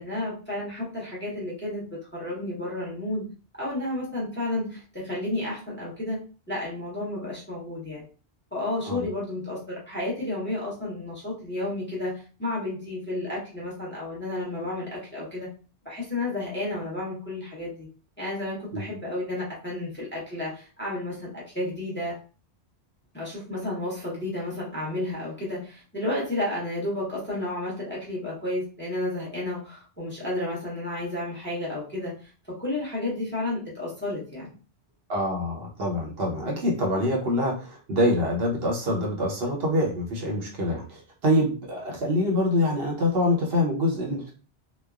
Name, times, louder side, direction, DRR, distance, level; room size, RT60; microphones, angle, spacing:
voice 1, 0.0-1.9 2.1-3.3 3.6-6.2 6.5-8.0 8.5-15.5 15.8-17.9 18.2-22.2 23.1-34.5, left 1 dB, 10° left, -5 dB, 0.8 m, -32 dB
voice 2, 35.1-44.3, left 1 dB, 65° right, -1 dB, 1.0 m, -25 dB
3.0 x 2.0 x 2.3 m, 0.37 s
omnidirectional pair, 1.1 m